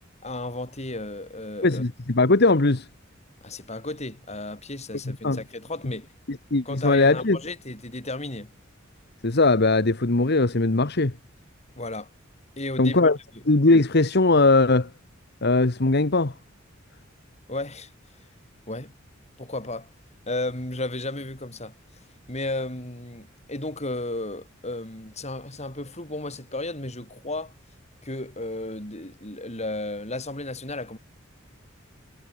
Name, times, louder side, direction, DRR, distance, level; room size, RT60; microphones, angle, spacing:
voice 1, 0.2-1.8 3.4-6.1 6.6-8.5 11.8-12.1 12.6-13.0 17.5-17.9 18.7-18.9 19.4-19.9 20.3-22.0 22.3-27.5 28.0-31.0, left 2 dB, 35° left, 6.1 m, -34 dB
voice 2, 1.6-2.9 5.2-5.4 6.3-7.4 9.2-11.1 12.8-13.2 13.4-14.9 15.4-16.3, left 2 dB, 55° left, 1.3 m, -20 dB
head